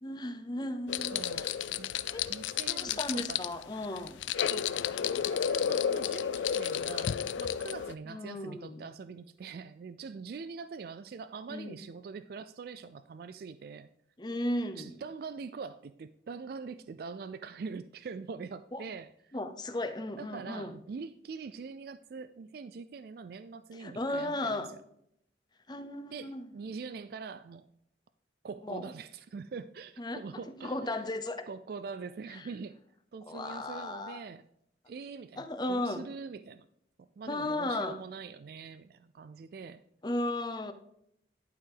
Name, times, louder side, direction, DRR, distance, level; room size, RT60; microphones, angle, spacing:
voice 1, 0.0-1.5 2.1-2.2 2.7-4.2 8.1-8.9 11.5-11.7 14.2-14.9 18.7-18.8 19.3-20.7 23.7-24.8 25.7-26.4 28.6-28.8 30.0-30.2 30.6-31.5 32.3-32.4 33.2-34.2 35.4-36.1 37.3-38.0 40.0-40.7, left 1 dB, 25° left, 0.6 m, -35 dB
sound 1, 0.9-7.9, left 8 dB, 90° left, 0.4 m, -32 dB
voice 2, 1.1-1.5 1.8-1.9 2.3-3.4 4.5-4.7 5.3-13.9 14.8-19.4 20.2-24.6 26.1-27.7 28.4-31.0 31.5-32.8 33.1-34.5 34.9-36.7 37.0-39.8, right 5 dB, 55° right, 0.3 m, -43 dB
11.0 x 4.7 x 3.8 m
head